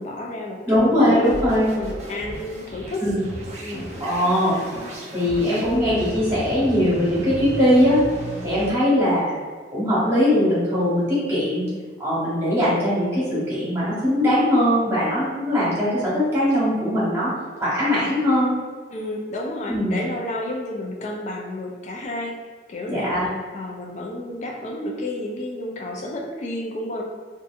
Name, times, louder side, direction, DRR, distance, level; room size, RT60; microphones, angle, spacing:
voice 1, 0.0-3.0 3.6-3.9 18.9-27.0, left 1 dB, 40° left, 0 dB, 0.3 m, -31 dB
voice 2, 0.6-1.7 3.0-3.2 4.0-4.6 5.1-8.0 8.4-9.4 9.7-11.7 12.0-17.3 17.6-18.5 19.7-20.0 22.9-23.3, equal, 15° right, -10 dB, 1.1 m, -20 dB
sound 1, 1.2-8.7, right 1 dB, 40° right, 0.5 m, -35 dB
2.6 x 2.5 x 2.4 m, 1.5 s
head